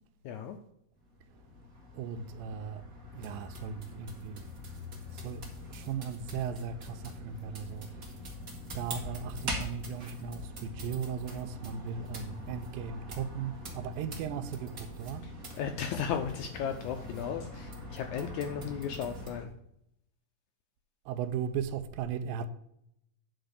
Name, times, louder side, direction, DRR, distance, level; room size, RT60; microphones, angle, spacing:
voice 1, 0.2-0.6 15.6-19.5, left 7 dB, 85° left, 1.7 m, -35 dB
sound 1, 1.0-19.4, left 1 dB, 40° right, 1.4 m, -43 dB
voice 2, 1.9-2.9 3.1-4.6 5.1-8.2 8.7-15.3 21.1-22.5, right 7 dB, 90° right, 2.4 m, -37 dB
9.9 x 4.0 x 6.5 m
omnidirectional pair, 4.0 m